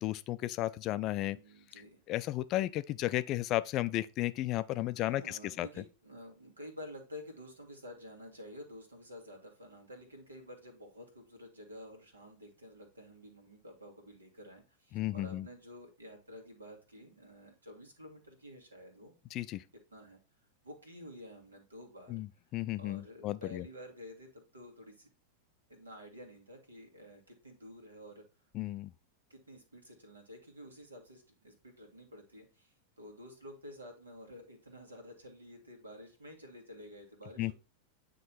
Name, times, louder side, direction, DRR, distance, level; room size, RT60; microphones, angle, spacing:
voice 1, 0.0-1.4 2.1-5.7 14.9-15.5 19.3-19.6 22.1-23.7 28.5-28.9 37.4-37.5, left 15 dB, 35° left, 0.4 m, -34 dB
voice 2, 1.2-2.0 4.9-19.1 19.9-20.2 20.6-22.2 22.8-25.1 25.7-28.3 29.3-37.5, left 1 dB, 75° right, 1.8 m, -51 dB
9.1 x 3.1 x 4.1 m
figure-of-eight pair, 90°, 0 cm